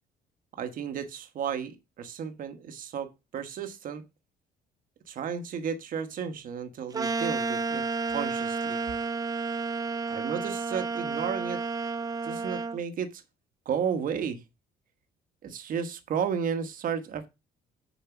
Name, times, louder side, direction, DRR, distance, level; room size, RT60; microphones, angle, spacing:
voice 1, 0.5-4.1 5.1-7.8 8.1-8.8 10.1-11.6 12.2-13.2 13.6-14.4 15.4-17.3, right 7 dB, 55° right, 1.2 m, -33 dB
sound 1, 6.9-12.8, right 4 dB, 20° right, 0.6 m, -31 dB
7.0 x 4.6 x 5.8 m
cardioid pair, 110°, 17 cm